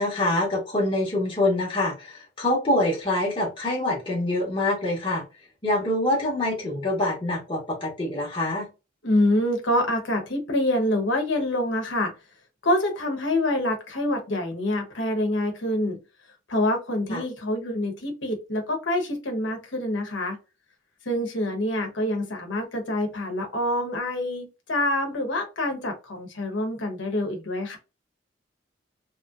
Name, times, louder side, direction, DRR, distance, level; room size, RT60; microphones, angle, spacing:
voice 1, 0.0-5.2 5.6-8.6 17.1-17.2, left 1 dB, 25° left, 0.9 m, -25 dB
voice 2, 9.0-12.1 12.6-16.0 16.5-20.4 21.0-27.8, left 1 dB, 75° left, 0.9 m, -26 dB
3.0 x 2.8 x 2.4 m
head